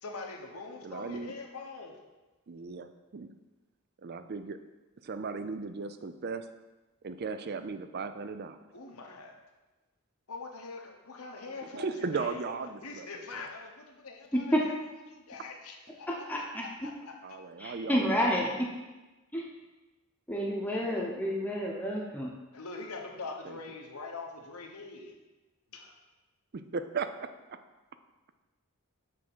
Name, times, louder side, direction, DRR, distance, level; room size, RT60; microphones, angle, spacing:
voice 1, 0.0-2.0 8.7-9.3 10.3-12.5 12.8-14.7 15.1-16.3 16.6-17.4 22.5-25.2 25.7-25.9, left 3 dB, 80° left, 2 dB, 1.1 m, -43 dB
voice 2, 0.8-1.4 2.5-3.3 4.0-4.6 5.0-6.5 7.0-8.7 11.6-13.5 17.2-18.3 23.4-23.6 26.5-27.3, right 4 dB, 45° right, 10 dB, 0.4 m, -37 dB
voice 3, 14.3-14.7 16.1-16.6 17.6-18.7 19.3-19.5 20.3-22.3, equal, 5° left, -2 dB, 0.9 m, -29 dB
7.4 x 3.6 x 6.1 m, 1.1 s
head